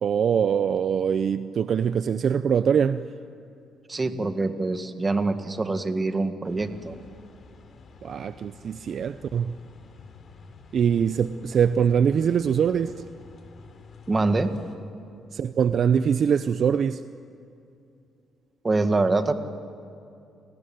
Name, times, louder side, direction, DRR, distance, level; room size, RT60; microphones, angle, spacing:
voice 1, 0.0-3.0 8.0-9.5 10.7-12.9 15.3-17.0, right 7 dB, 55° right, 0.6 m, -23 dB
voice 2, 3.9-7.0 14.1-14.5 18.6-19.3, right 3 dB, 25° right, 1.8 m, -25 dB
sound 1, 6.4-14.8, left 4 dB, 55° left, 3.1 m, -49 dB
28.5 x 19.5 x 9.3 m
cardioid pair, 90°, 0 cm